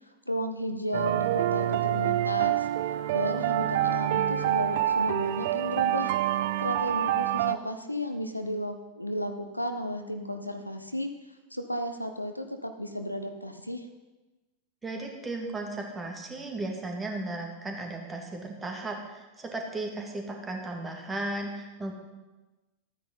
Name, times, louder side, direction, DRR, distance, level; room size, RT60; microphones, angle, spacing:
voice 1, 0.3-2.7 3.1-6.1 6.6-11.1 11.5-13.9, equal, 90° left, 7 dB, 0.9 m, -33 dB
sound 1, 0.9-7.5, right 12 dB, 50° right, 0.4 m, -27 dB
voice 2, 14.8-21.9, right 2 dB, 15° right, 2 dB, 2.1 m, -35 dB
13.0 x 9.3 x 5.5 m, 1.1 s
figure-of-eight pair, 90°, 0 cm